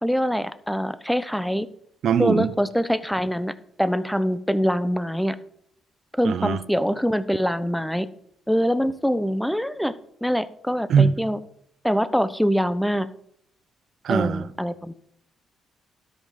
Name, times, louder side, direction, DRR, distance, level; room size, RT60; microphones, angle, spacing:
voice 1, 0.0-1.7 2.2-3.5 3.8-5.4 6.2-8.1 8.5-9.9 10.2-11.4 11.8-13.1 14.1-14.9, equal, ahead, 0.7 m, -24 dB
voice 2, 2.0-2.5 6.2-6.6 10.9-11.2 14.0-14.4, right 7 dB, 65° right, 0.7 m, -20 dB
12.5 x 5.2 x 5.9 m
cardioid pair, 90°, 0 cm